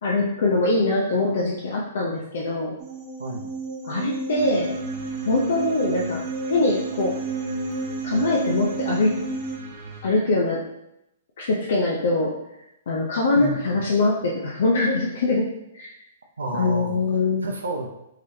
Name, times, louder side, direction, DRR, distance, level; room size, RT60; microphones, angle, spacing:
voice 1, 0.0-2.8 3.8-4.8 5.2-6.2 6.5-7.1 8.0-9.2 10.0-10.6 11.4-12.3 12.9-15.5 15.7-15.9 16.5-17.4, left 2 dB, 65° left, -2 dB, 0.6 m, -23 dB
sound 1, 2.8-9.6, right 3 dB, 30° right, 1.1 m, -31 dB
voice 2, 3.2-3.5 13.4-13.8 16.4-17.0 17.4-17.9, right 2 dB, 80° right, 1 dB, 0.6 m, -30 dB
sound 2, 4.3-10.0, right 3 dB, 55° right, 1.2 m, -41 dB
3.9 x 3.1 x 2.8 m, 0.84 s
figure-of-eight pair, 120°, 0 cm